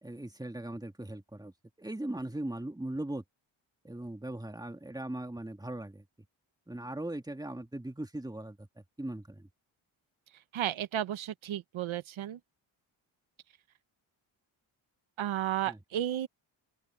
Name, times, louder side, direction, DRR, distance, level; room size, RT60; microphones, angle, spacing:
voice 1, 0.0-3.2 3.8-6.0 6.7-8.7 9.0-9.5 15.7-15.8, right 1 dB, 10° right, 2.2 m, -39 dB
voice 2, 10.5-12.4 15.2-16.3, right 11 dB, 75° right, 1.0 m, -33 dB
open air
cardioid pair, 75°, 48 cm